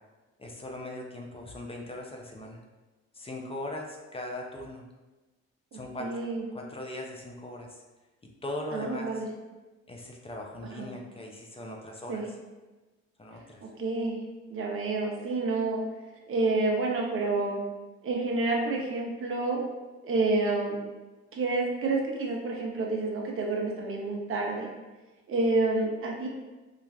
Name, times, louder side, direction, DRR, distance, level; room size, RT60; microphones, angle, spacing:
voice 1, 0.4-2.6 3.1-4.8 5.7-6.2 6.5-7.8 8.4-9.2 9.9-12.2 13.2-13.6, left 1 dB, 20° left, 0 dB, 0.4 m, -39 dB
voice 2, 5.7-6.4 8.7-9.3 10.7-10.9 12.1-12.3 13.6-14.2 14.5-15.8 16.3-17.6 18.0-19.6 20.0-20.8 21.3-24.7 25.3-26.3, right 3 dB, 45° right, 0 dB, 0.6 m, -29 dB
3.1 x 2.4 x 2.2 m, 1.2 s
cardioid pair, 90°, 30 cm